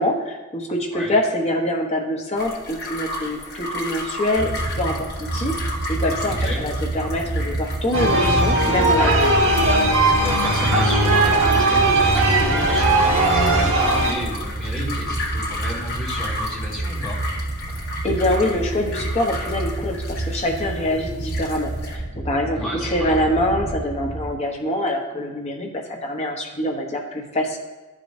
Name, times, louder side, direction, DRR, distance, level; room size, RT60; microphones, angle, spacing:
voice 1, 0.0-9.4 17.7-27.6, left 1 dB, 30° left, 0 dB, 1.0 m, -25 dB
sound 1, 2.4-21.9, left 2 dB, 45° left, 1.5 m, -33 dB
sound 2, 4.4-24.3, right 2 dB, 40° right, 1.2 m, -28 dB
voice 2, 6.3-6.6 10.2-17.2 22.5-23.1, equal, 5° left, -8 dB, 1.7 m, -32 dB
sound 3, 7.9-14.1, right 2 dB, 70° right, 1.7 m, -18 dB
12.5 x 5.0 x 2.7 m, 1.2 s
head